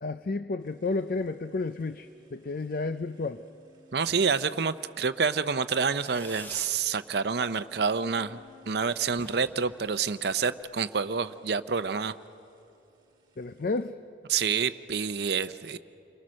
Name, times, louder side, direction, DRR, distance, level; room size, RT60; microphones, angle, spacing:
voice 1, 0.0-3.4 13.4-14.0, left 3 dB, 50° left, 11 dB, 0.5 m, -31 dB
sound 1, 0.6-13.9, left 3 dB, 25° right, 2.0 m, -62 dB
voice 2, 3.9-8.4 8.7-12.1 14.3-15.8, right 5 dB, 60° right, 12 dB, 0.6 m, -28 dB
Fireworks, 5.9-6.9 7.2-7.8 8.0-8.1 8.4-8.5 8.7-8.8 9.1-10.7, left 1 dB, 10° left, 0.7 m, -48 dB
29.5 x 22.0 x 6.4 m, 2.9 s
head